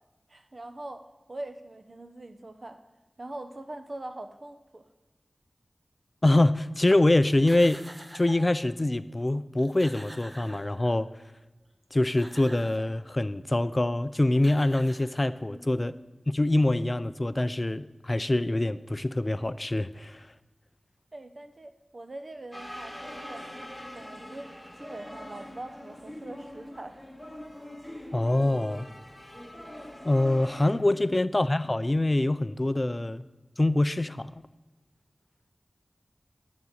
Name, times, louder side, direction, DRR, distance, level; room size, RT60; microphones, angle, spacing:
voice 1, 0.3-2.8 3.2-4.9 15.5-15.8 21.1-23.5 23.9-27.0, right 2 dB, 50° right, 8 dB, 0.8 m, -43 dB
voice 2, 6.2-7.8 8.1-11.1 11.9-15.9 16.3-20.3 28.1-28.9 30.0-33.3 33.6-34.4, left 1 dB, 30° left, 14 dB, 0.4 m, -25 dB
sound 1, 7.3-8.6 9.3-9.4 9.6-11.1 11.8-13.0 14.0-14.1 14.3-15.6, right 1 dB, 20° right, 1.2 m, -47 dB
sound 2, 22.5-30.7, left 1 dB, 5° left, 1.6 m, -43 dB
11.0 x 4.0 x 7.3 m, 1.1 s
wide cardioid pair, 65°, 0 cm